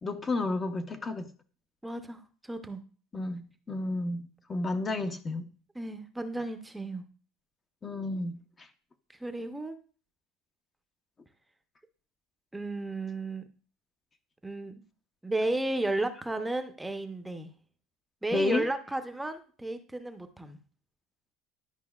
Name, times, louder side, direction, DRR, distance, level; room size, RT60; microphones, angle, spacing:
voice 1, 0.0-1.3 3.1-5.5 7.8-8.7 18.3-18.7, left 2 dB, 25° left, 0.7 m, -31 dB
voice 2, 1.8-2.8 5.7-7.0 9.2-9.8 12.5-13.4 14.4-14.8 15.2-17.5 18.2-20.6, right 2 dB, 10° right, 0.7 m, -33 dB
10.5 x 5.3 x 2.3 m
supercardioid pair, 105°, 0 cm